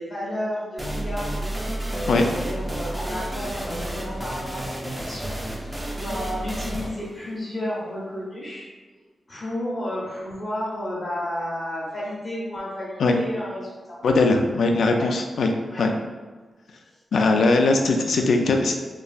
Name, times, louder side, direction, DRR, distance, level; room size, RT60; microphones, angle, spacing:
voice 1, 0.0-1.3 1.9-8.7 9.3-14.0 14.9-15.0 15.7-15.8 17.3-17.6, left 1 dB, 45° left, -7 dB, 0.7 m, -32 dB
sound 1, 0.8-8.2, right 1 dB, 10° right, 0.3 m, -31 dB
voice 2, 14.0-15.5 15.8-15.9 17.1-18.7, left 3 dB, 80° left, 3 dB, 0.3 m, -20 dB
3.0 x 2.3 x 2.4 m, 1.3 s
wide cardioid pair, 100°, 0 cm